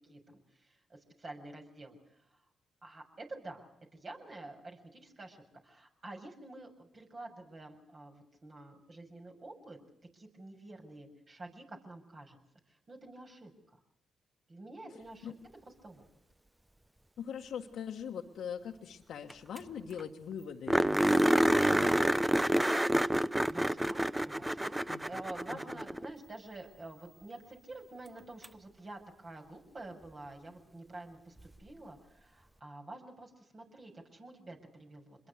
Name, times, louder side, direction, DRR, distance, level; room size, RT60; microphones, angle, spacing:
voice 1, 0.1-2.2 2.8-12.4 12.7-13.8 14.5-15.3 15.6-16.1 23.0-35.3, right 2 dB, 45° right, 2 dB, 7.1 m, -49 dB
voice 2, 17.2-22.2 24.9-25.2 25.5-25.6, left 8 dB, 70° left, 2 dB, 1.4 m, -42 dB
sound 1, 19.3-19.4 19.6-19.7 20.0-20.1 20.7-26.1 28.4-28.5 31.4-31.5, right 1 dB, 10° right, 0.9 m, -28 dB
26.5 x 22.0 x 6.6 m, 0.73 s
hypercardioid pair, 45°, 0 cm